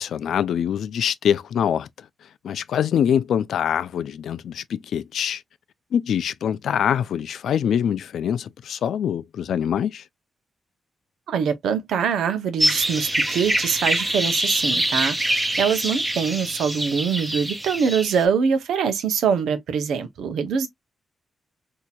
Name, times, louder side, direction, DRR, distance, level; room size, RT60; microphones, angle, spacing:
voice 1, 0.0-1.9 2.4-5.4 5.9-10.0, left 8 dB, 80° left, 0.3 m, -24 dB
voice 2, 11.3-20.7, right 6 dB, 90° right, 0.7 m, -24 dB
sound 1, 12.6-18.2, right 1 dB, 15° right, 0.9 m, -24 dB
4.2 x 2.8 x 2.3 m
cardioid pair, 90°, 0 cm